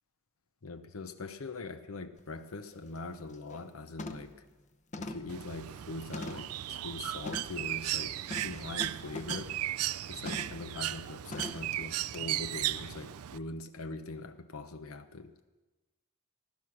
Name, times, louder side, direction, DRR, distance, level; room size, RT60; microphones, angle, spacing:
voice 1, 0.6-4.3 5.0-9.5 10.1-15.3, left 3 dB, 70° left, 9 dB, 0.8 m, -42 dB
sound 1, 2.2-2.3 2.7-3.0 3.3-3.7 4.0-4.4 4.9-6.6 7.2-7.6 8.3-9.6 10.2-10.6 11.3-11.7 12.1-12.2, left 2 dB, 35° left, 0.8 m, -42 dB
Bird, 5.3-13.4, right 13 dB, 85° right, 0.4 m, -36 dB
16.0 x 12.5 x 6.2 m, 1.2 s
head